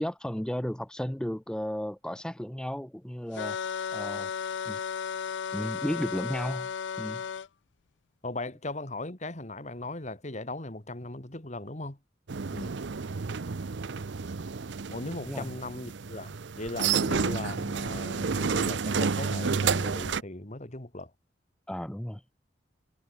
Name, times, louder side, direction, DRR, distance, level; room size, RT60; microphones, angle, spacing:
voice 1, 0.0-3.6 3.9-4.3 4.7-4.8 5.5-6.7 7.0-7.2 12.5-12.7 15.3-15.5 21.7-22.2, equal, 5° left, 0.5 m, -34 dB
sound 1, 3.3-7.5, left 7 dB, 80° left, 0.4 m, -34 dB
voice 2, 8.2-12.0 14.9-21.1, left 2 dB, 40° left, 2.8 m, -38 dB
sound 2, 12.3-20.2, right 5 dB, 80° right, 0.7 m, -30 dB
head